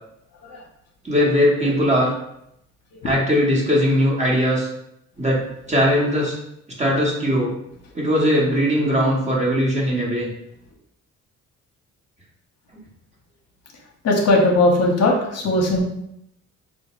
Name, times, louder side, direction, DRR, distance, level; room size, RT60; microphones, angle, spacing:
voice 1, 1.0-2.1 3.0-4.7 5.2-5.4 5.7-6.4 6.8-7.5 7.9-10.3, equal, 25° right, -3 dB, 1.0 m, -19 dB
voice 2, 14.0-15.8, left 2 dB, 55° left, 0 dB, 0.8 m, -19 dB
4.0 x 2.2 x 2.9 m, 0.77 s
cardioid pair, 90°, 30 cm